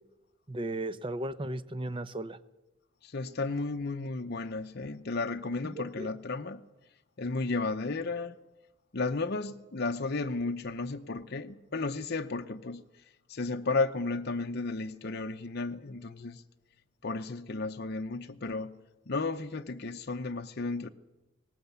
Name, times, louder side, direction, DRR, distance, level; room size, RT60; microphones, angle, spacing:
voice 1, 0.5-2.4 5.6-6.1, right 1 dB, 25° right, 0.7 m, -36 dB
voice 2, 3.0-6.6 7.2-8.4 8.9-12.8 13.3-16.4 17.0-18.7 19.1-20.9, left 3 dB, 50° left, 0.7 m, -33 dB
19.0 x 18.0 x 8.1 m
head